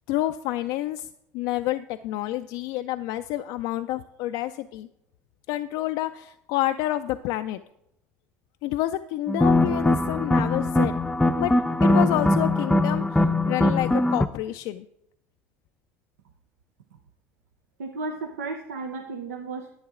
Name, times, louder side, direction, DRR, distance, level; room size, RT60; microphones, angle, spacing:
voice 1, 0.1-1.1 1.3-4.9 5.5-7.6 8.6-10.9 11.4-11.5 11.8-13.2 13.5-14.9, left 14 dB, 70° left, 9 dB, 0.3 m, -28 dB
sound 1, 9.3-14.3, left 1 dB, 10° left, 0.5 m, -21 dB
voice 2, 17.8-19.7, right 3 dB, 90° right, 4 dB, 0.6 m, -34 dB
10.5 x 8.6 x 3.7 m, 0.80 s
hypercardioid pair, 70°, 8 cm